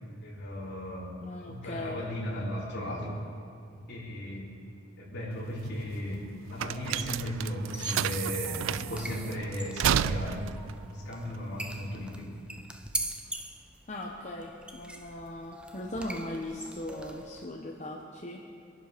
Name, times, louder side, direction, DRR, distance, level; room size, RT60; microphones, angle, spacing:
voice 1, 0.2-1.1 1.5-3.2 3.7-4.5 5.0-6.2 6.5-10.4 10.8-12.3, left 1 dB, 55° left, -6 dB, 4.1 m, -36 dB
voice 2, 1.2-2.0 13.9-18.4, left 1 dB, 35° left, -1 dB, 1.1 m, -39 dB
sound 1, 5.3-12.1, right 10 dB, 70° right, 0.3 m, -32 dB
sound 2, 7.7-17.5, right 1 dB, 5° right, 0.7 m, -42 dB
24.5 x 11.0 x 5.2 m, 2.3 s
head